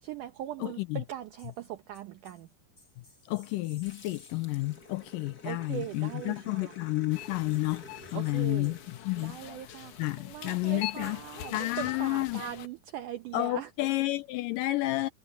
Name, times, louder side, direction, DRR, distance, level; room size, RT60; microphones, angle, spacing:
voice 1, 0.0-2.5 5.4-6.7 8.1-8.8 9.2-13.7, right 12 dB, 70° right, 2.1 m, -40 dB
voice 2, 0.6-1.0 3.3-7.8 8.1-8.8 9.1-9.4 10.0-11.2 11.5-12.4 13.3-15.1, left 19 dB, 85° left, 2.0 m, -30 dB
sound 1, 0.9-1.1 1.4-1.7 1.9-4.5 5.6-6.7 7.5-11.4, left 2 dB, 25° left, 5.7 m, -61 dB
Growling, 3.8-10.5, left 2 dB, 40° left, 1.5 m, -52 dB
sound 2, 7.1-12.7, left 13 dB, 65° left, 2.2 m, -44 dB
omnidirectional pair, 4.3 m